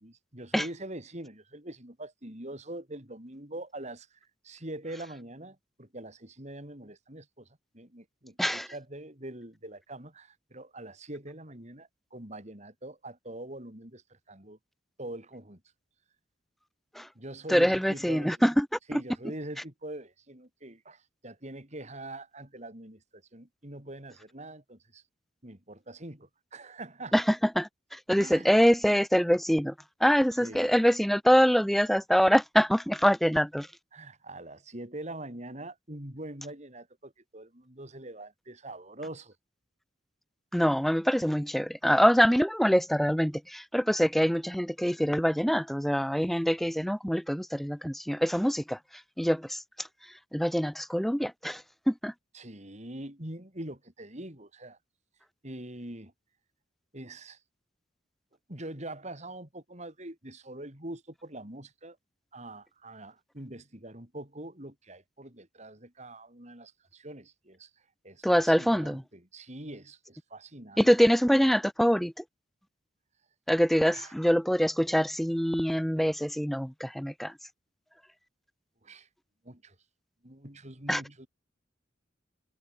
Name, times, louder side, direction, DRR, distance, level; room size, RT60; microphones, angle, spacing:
voice 1, 0.0-4.2 4.4-7.5 7.7-14.6 15.0-15.6 17.1-18.5 18.9-25.0 25.4-27.1 28.2-28.5 30.4-30.7 33.9-39.3 52.3-54.8 55.4-56.1 56.9-57.4 58.5-62.0 62.3-67.7 68.0-71.1 73.9-74.1 78.8-79.1 79.4-79.7 80.2-81.3, right 1 dB, 40° right, 4.9 m, -43 dB
voice 2, 17.5-18.7 18.9-19.0 27.1-29.7 30.0-33.7 40.5-48.8 49.2-49.9 50.3-52.1 68.2-69.0 70.8-72.2 73.5-77.3 80.9-81.0, equal, ahead, 0.7 m, -25 dB
head